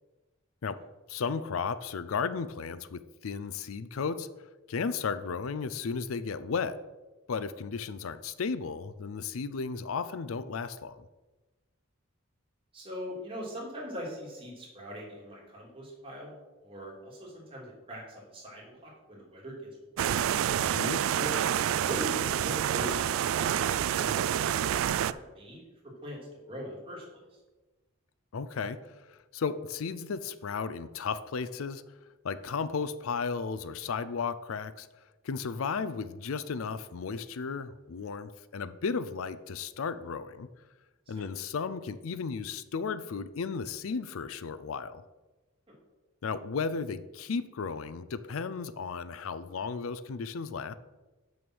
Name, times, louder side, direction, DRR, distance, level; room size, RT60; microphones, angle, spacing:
voice 1, 1.1-4.3 4.7-6.8 7.3-11.0 20.6-21.0 28.3-31.8 32.2-34.9 35.2-40.5 41.1-45.0 46.2-50.7, left 5 dB, 85° left, 14 dB, 0.5 m, -34 dB
voice 2, 12.7-16.3 16.6-20.2 21.1-21.4 21.8-25.6 26.0-26.2 26.5-27.2 41.1-41.2, equal, 25° right, -4 dB, 2.8 m, -41 dB
sound 1, 20.0-25.1, right 10 dB, 80° right, 0.3 m, -28 dB
7.0 x 6.3 x 6.2 m, 1.2 s
head